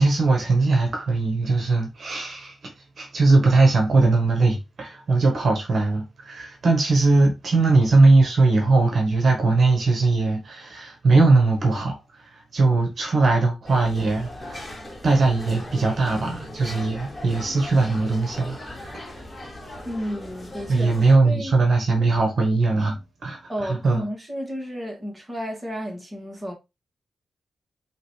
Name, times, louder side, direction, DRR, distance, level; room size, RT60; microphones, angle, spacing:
voice 1, 0.0-14.7 15.0-19.0 20.7-24.0, right 3 dB, 60° right, 1.1 m, -20 dB
sound 1, 13.6-21.1, left 1 dB, 15° left, 1.9 m, -39 dB
voice 2, 19.9-20.9 21.2-21.5 23.5-26.5, equal, 15° right, 1.9 m, -32 dB
4.9 x 3.0 x 3.1 m
cardioid pair, 80°, 0 cm